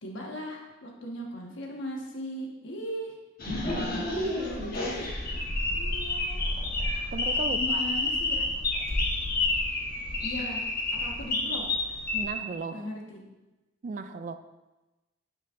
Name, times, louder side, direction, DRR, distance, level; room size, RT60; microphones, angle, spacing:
voice 1, 0.0-3.1 3.9-5.1 5.7-6.4 7.5-8.4 10.2-10.6 11.0-11.6 12.7-13.2, equal, 70° left, 0 dB, 1.3 m, -38 dB
sound 1, 3.4-12.2, left 2 dB, 50° left, 1.2 m, -29 dB
voice 2, 3.7-5.1 7.1-7.8 12.1-12.9 13.8-14.4, right 4 dB, 40° right, 10 dB, 0.3 m, -37 dB
9.1 x 6.4 x 2.5 m, 1.1 s
head